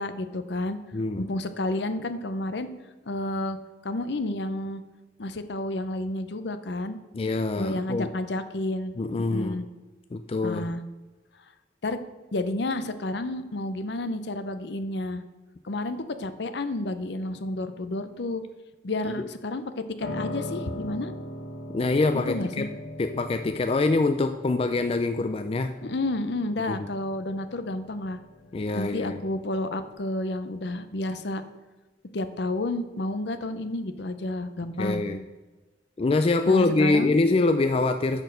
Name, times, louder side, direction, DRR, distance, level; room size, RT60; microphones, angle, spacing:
voice 1, 0.0-0.8 1.2-2.7 3.1-3.6 3.8-4.8 5.2-7.0 7.6-9.6 10.4-10.8 11.8-12.0 12.3-15.2 15.6-18.4 18.8-19.7 20.0-21.1 22.3-22.7 25.8-28.2 28.7-31.4 32.1-35.1 36.5-37.1, left 2 dB, 60° left, 11 dB, 0.6 m, -30 dB
voice 2, 0.9-1.3 7.1-8.1 9.0-9.6 10.1-10.7 21.7-22.7 23.0-25.7 26.7-26.9 28.5-29.2 34.8-35.2 36.0-38.2, left 3 dB, 30° left, 8 dB, 0.3 m, -24 dB
Piano, 20.0-29.9, left 1 dB, 80° left, 1.7 m, -40 dB
6.6 x 6.1 x 6.4 m, 1.2 s
head